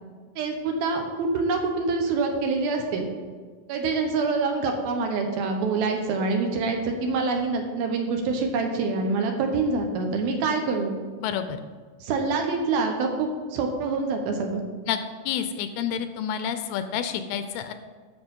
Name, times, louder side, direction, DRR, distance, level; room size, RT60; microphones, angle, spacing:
voice 1, 0.4-3.1 3.7-10.9 12.0-14.6, right 4 dB, 70° right, 3 dB, 2.7 m, -26 dB
voice 2, 11.2-11.6 14.9-15.0 15.3-17.7, left 8 dB, 80° left, 9 dB, 2.5 m, -29 dB
10.5 x 6.7 x 5.3 m, 1.5 s
omnidirectional pair, 4.7 m